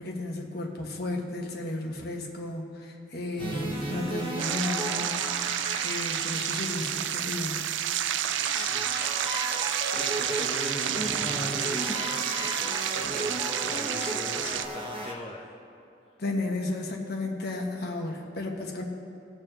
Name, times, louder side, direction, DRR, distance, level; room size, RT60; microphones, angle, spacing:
voice 1, 0.0-5.5 5.8-7.6 16.2-18.8, left 2 dB, 60° left, 1 dB, 1.3 m, -33 dB
sound 1, 3.4-15.1, right 1 dB, 30° right, 1.1 m, -35 dB
sound 2, 4.4-14.7, right 11 dB, 75° right, 0.4 m, -30 dB
voice 2, 8.5-8.9 9.9-15.5, left 2 dB, 30° left, -2 dB, 0.8 m, -40 dB
20.0 x 6.8 x 3.0 m, 2.8 s
head